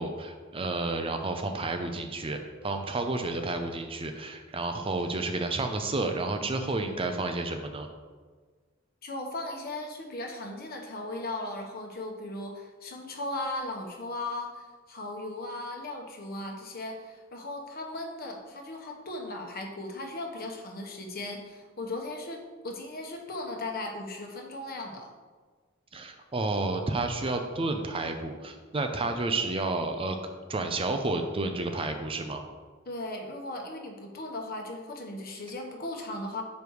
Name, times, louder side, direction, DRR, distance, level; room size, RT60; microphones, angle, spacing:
voice 1, 0.0-7.9 25.9-30.2 30.5-32.4, right 2 dB, 30° right, 5 dB, 0.5 m, -31 dB
voice 2, 9.0-25.1 32.8-36.4, left 2 dB, 50° left, 2 dB, 1.0 m, -37 dB
6.3 x 5.2 x 4.7 m, 1.5 s
head